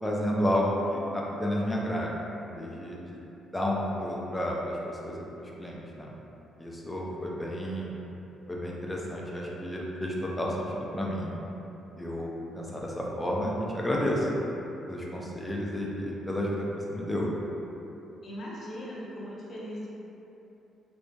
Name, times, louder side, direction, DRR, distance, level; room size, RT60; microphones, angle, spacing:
voice 1, 0.0-3.0 3.5-6.1 6.6-8.0 8.5-11.3 12.0-14.3 14.9-17.3, equal, 10° left, -3 dB, 0.4 m, -31 dB
voice 2, 18.2-19.9, equal, 55° left, -6 dB, 0.6 m, -39 dB
2.9 x 2.5 x 2.2 m, 3.0 s
cardioid pair, 90°, 0 cm